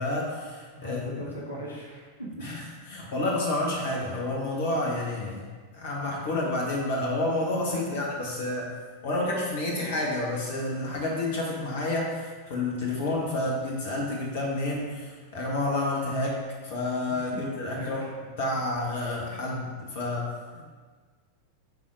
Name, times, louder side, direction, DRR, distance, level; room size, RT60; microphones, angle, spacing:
voice 1, 0.0-1.0 2.4-2.6 2.9-5.4 5.7-8.8 9.0-18.0 18.4-20.3, left 2 dB, 55° left, -2 dB, 1.8 m, -29 dB
voice 2, 0.7-2.5 17.1-17.5 17.7-17.9 20.5-20.6, equal, 75° left, -4 dB, 1.8 m, -39 dB
10.5 x 4.3 x 4.9 m, 1.5 s
figure-of-eight pair, 90°, 0 cm